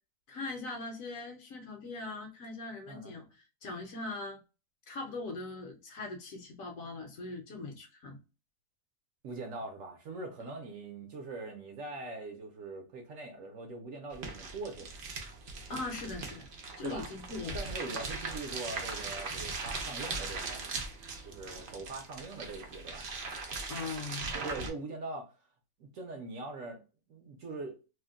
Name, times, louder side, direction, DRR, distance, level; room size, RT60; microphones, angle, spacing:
voice 1, 0.3-4.4 4.9-8.2 15.7-16.5 16.8-18.0 23.7-24.4, left 3 dB, 65° left, 1.0 m, -41 dB
voice 2, 9.2-15.0 16.8-17.1 17.5-20.8 21.2-23.1 24.4-25.3 25.8-26.8 27.1-27.8, right 3 dB, 65° right, 0.9 m, -42 dB
sound 1, 14.1-24.7, right 3 dB, 85° right, 0.4 m, -40 dB
2.8 x 2.1 x 3.5 m
omnidirectional pair, 1.7 m